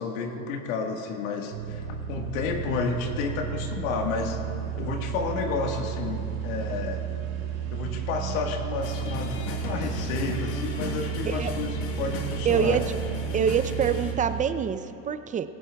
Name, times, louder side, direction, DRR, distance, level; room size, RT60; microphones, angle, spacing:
voice 1, 0.0-4.4 4.8-7.0 7.7-12.8, left 4 dB, 75° left, 3 dB, 1.6 m, -31 dB
sound 1, 1.5-14.4, right 9 dB, 85° right, 2.3 m, -33 dB
sound 2, 8.8-14.1, left 4 dB, 55° left, 1.8 m, -36 dB
voice 2, 12.5-12.9 13.3-15.5, right 7 dB, 20° right, 12 dB, 0.4 m, -25 dB
18.5 x 16.5 x 2.3 m, 2.9 s
hypercardioid pair, 95°, 40 cm